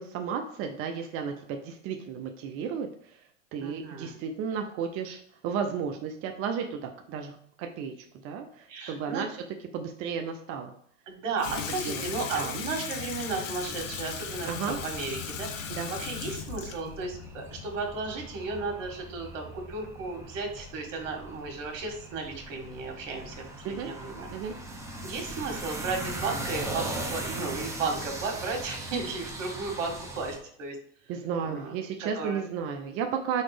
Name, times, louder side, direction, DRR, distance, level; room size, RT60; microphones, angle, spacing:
voice 1, 0.0-3.2 3.5-7.9 8.2-9.4 9.7-10.7 11.8-12.0 12.3-12.6 14.5-14.8 15.7-15.9 23.6-23.9 24.3-24.6 31.1-33.4, right 7 dB, 35° right, 4 dB, 0.6 m, -33 dB
voice 2, 3.6-4.2 8.7-9.2 11.1-24.3 25.0-30.8 31.4-31.7 32.0-32.4, right 4 dB, 75° right, 2 dB, 1.9 m, -34 dB
Water tap faucet / Sink (filling or washing), 11.4-18.4, left 7 dB, 75° left, 1.1 m, -38 dB
sound 1, 13.6-30.4, right 1 dB, 10° right, 0.9 m, -40 dB
4.9 x 4.2 x 4.9 m, 0.65 s
supercardioid pair, 130°, 38 cm